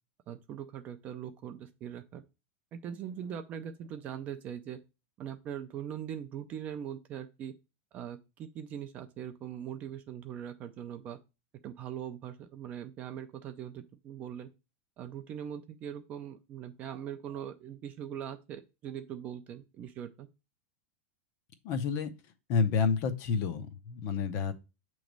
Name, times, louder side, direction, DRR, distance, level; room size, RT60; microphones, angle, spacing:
voice 1, 0.3-2.2 2.7-4.8 5.2-7.5 7.9-11.2 11.6-14.5 15.0-20.3, right 9 dB, 20° right, 8 dB, 0.4 m, -41 dB
voice 2, 21.6-22.1 22.5-24.5, left 5 dB, 35° left, 10 dB, 0.6 m, -29 dB
6.9 x 3.1 x 5.1 m, 0.27 s
supercardioid pair, 175°, 7 cm